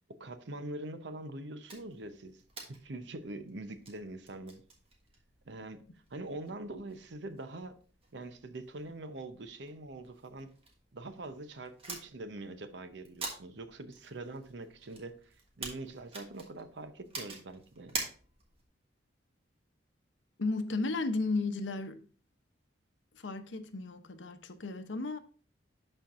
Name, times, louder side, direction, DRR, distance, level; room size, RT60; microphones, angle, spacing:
voice 1, 0.2-2.4 2.7-4.6 5.5-5.8 6.1-7.8 8.1-10.5 10.9-18.0, right 2 dB, 70° right, 0.8 m, -44 dB
sound 1, 1.7-18.7, right 3 dB, 30° right, 1.5 m, -48 dB
voice 2, 20.4-22.0 23.1-25.2, left 3 dB, 85° left, 0.8 m, -34 dB
11.5 x 4.5 x 2.5 m
head